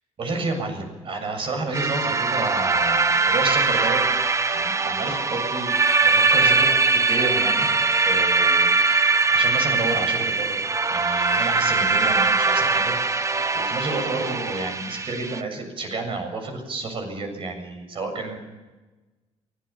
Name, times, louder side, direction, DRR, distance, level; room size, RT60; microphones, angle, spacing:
voice 1, 0.2-4.0 4.5-5.8 6.0-7.7 8.0-10.6 10.9-13.0 13.5-18.4, right 3 dB, 50° right, 5 dB, 7.2 m, -30 dB
sound 1, 1.7-15.4, right 4 dB, 25° right, 1.0 m, -21 dB
24.0 x 19.0 x 7.2 m, 1.2 s
cardioid pair, 130°, 12 cm